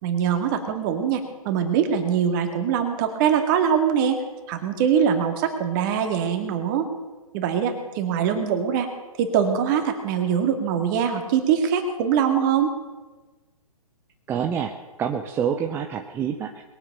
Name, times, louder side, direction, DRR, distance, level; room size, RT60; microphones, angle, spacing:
voice 1, 0.0-4.2 4.5-6.9 7.3-8.9 9.2-12.7, right 8 dB, 35° right, 6 dB, 2.1 m, -23 dB
voice 2, 14.3-16.6, right 8 dB, 10° right, 5 dB, 0.6 m, -27 dB
21.5 x 7.8 x 6.6 m, 1.2 s
hypercardioid pair, 135°, 19 cm